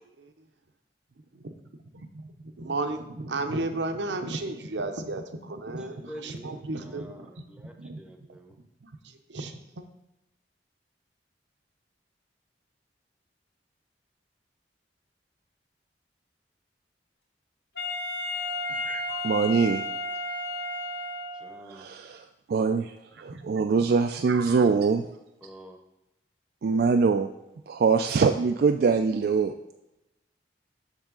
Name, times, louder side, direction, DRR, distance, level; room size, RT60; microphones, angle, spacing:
voice 1, 1.9-8.0 8.8-8.9 9.3-9.8 18.8-19.3 23.3-23.6 24.2-24.6, right 2 dB, 80° right, 7 dB, 0.7 m, -34 dB
voice 2, 5.8-8.6 21.3-21.9 25.4-25.8, equal, 5° right, 3 dB, 0.8 m, -47 dB
Wind instrument woodwind instrument, 17.8-21.7, left 2 dB, 65° left, 1.9 m, -33 dB
voice 3, 19.2-19.8 21.7-22.9 23.2-25.1 26.6-27.3 27.7-29.5, right 5 dB, 55° right, 6 dB, 0.3 m, -23 dB
7.2 x 6.3 x 3.8 m, 0.93 s
head